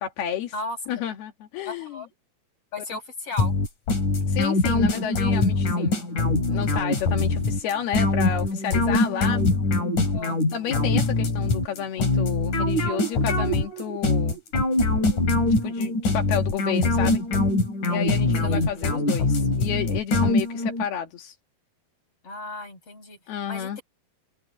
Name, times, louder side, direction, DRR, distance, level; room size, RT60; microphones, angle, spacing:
voice 1, 0.0-0.5 0.9-2.0 4.3-6.1 6.5-9.4 10.5-14.4 15.5-17.2 17.9-21.4 23.3-23.8, left 9 dB, 85° left, 4.0 m, -31 dB
voice 2, 0.5-1.1 1.7-2.1 2.7-3.5 10.1-10.4 18.4-18.7 22.2-23.2 23.5-23.8, left 2 dB, 40° left, 7.8 m, -35 dB
sound 1, 3.4-20.9, left 2 dB, 55° left, 6.2 m, -23 dB
omnidirectional pair, 4.4 m